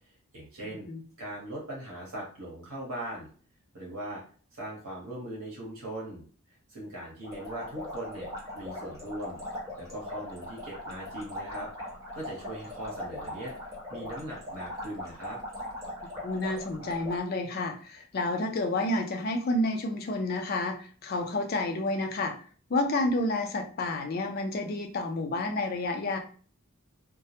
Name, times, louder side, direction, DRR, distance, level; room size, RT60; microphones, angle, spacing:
voice 1, 0.3-0.9 1.2-3.3 3.7-4.2 4.5-6.2 6.7-9.4 9.8-11.7 12.1-13.5 13.9-15.4, right 1 dB, 75° right, -4 dB, 0.8 m, -40 dB
sound 1, 7.2-17.2, left 1 dB, 15° right, 1.0 m, -40 dB
voice 2, 16.2-22.3 22.7-26.2, left 2 dB, 45° left, 4 dB, 0.4 m, -30 dB
2.2 x 2.0 x 2.7 m, 0.42 s
head